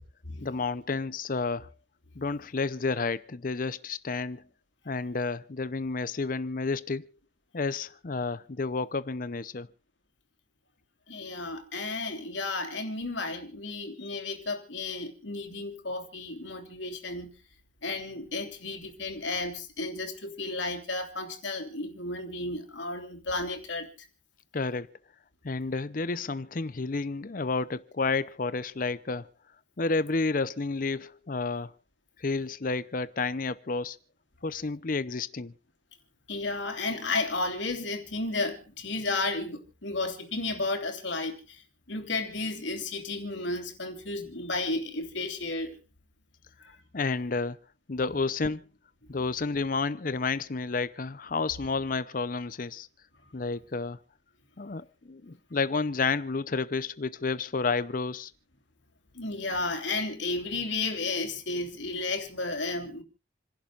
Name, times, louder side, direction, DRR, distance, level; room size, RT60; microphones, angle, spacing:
voice 1, 0.4-1.7 2.2-4.4 4.9-7.1 7.5-9.7 24.5-24.9 25.4-29.3 29.8-31.7 32.2-34.0 34.4-35.5 46.9-47.6 47.9-48.7 49.1-52.9 53.3-54.0 54.6-58.3, left 4 dB, 50° left, 0.6 m, -30 dB
voice 2, 11.1-17.3 17.8-23.9 36.3-41.6 41.9-45.8 46.6-46.8 59.1-63.0, left 3 dB, 85° left, 3.2 m, -33 dB
28.5 x 11.5 x 2.5 m
head